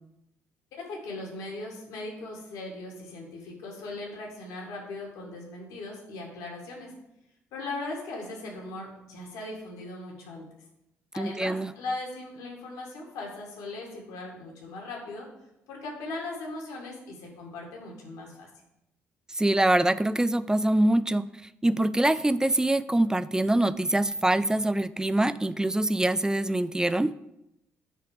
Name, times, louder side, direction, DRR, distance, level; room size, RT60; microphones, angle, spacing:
voice 1, 0.8-6.9 7.5-10.5 11.1-15.3 15.7-18.5, left 2 dB, 65° left, -1 dB, 1.9 m, -38 dB
voice 2, 11.2-11.7 19.3-21.3 21.6-27.1, right 1 dB, 10° right, 16 dB, 0.4 m, -24 dB
9.9 x 4.0 x 5.0 m, 0.85 s
figure-of-eight pair, 45°, 7 cm